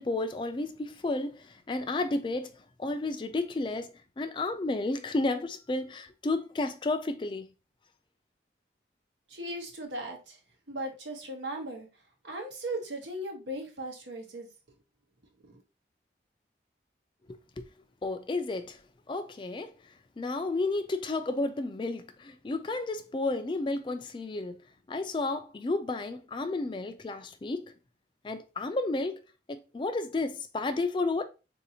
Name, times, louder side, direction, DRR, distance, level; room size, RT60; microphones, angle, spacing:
voice 1, 0.0-2.5 2.8-7.5 17.3-17.7 18.0-18.8 19.1-19.7 20.2-24.6 24.9-27.7 28.2-29.2 29.5-31.2, left 2 dB, 25° left, 0.3 m, -32 dB
voice 2, 9.3-10.4 10.7-11.9 12.2-14.5 15.4-15.6, right 1 dB, 85° right, 1.0 m, -37 dB
4.0 x 2.7 x 2.8 m
head